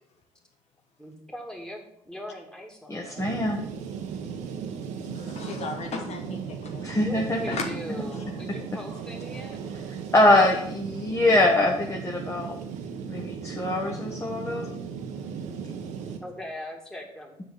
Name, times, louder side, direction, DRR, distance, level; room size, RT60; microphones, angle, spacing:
voice 1, 1.0-3.3 6.9-9.6 16.2-17.4, equal, 5° left, 1 dB, 2.4 m, -40 dB
voice 2, 2.9-3.6 6.8-7.6 10.1-12.6 13.1-14.7, left 1 dB, 25° left, 0 dB, 1.5 m, -23 dB
sound 1, 3.2-16.2, right 6 dB, 90° right, 1.1 m, -36 dB
voice 3, 5.0-7.0 7.5-7.7, left 4 dB, 65° left, 4 dB, 1.2 m, -35 dB
6.8 x 5.3 x 7.1 m, 0.73 s
supercardioid pair, 75°, 12 cm